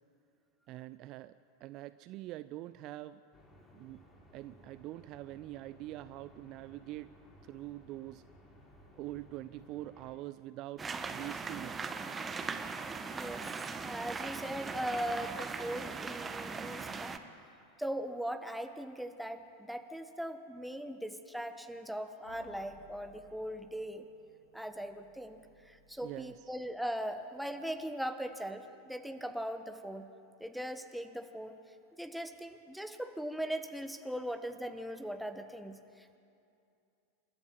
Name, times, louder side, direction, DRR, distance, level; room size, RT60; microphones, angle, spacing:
voice 1, 0.7-1.4 1.6-3.2 3.7-4.0 4.3-7.1 7.4-8.2 9.0-11.8 26.0-26.5, right 16 dB, 40° right, 15 dB, 0.4 m, -44 dB
sound 1, 3.3-10.2, left 1 dB, 20° left, 3.8 m, -59 dB
sound 2, 10.8-17.2, right 4 dB, 20° right, 1.2 m, -39 dB
voice 2, 13.1-13.5 13.8-17.2 17.8-24.0 24.5-25.4 25.6-30.1 30.4-31.6 32.0-36.2, equal, ahead, 7 dB, 1.3 m, -39 dB
sound 3, 22.2-26.9, right 1 dB, 90° left, 6.2 m, -61 dB
28.5 x 13.0 x 7.5 m, 2.6 s
figure-of-eight pair, 85°, 0 cm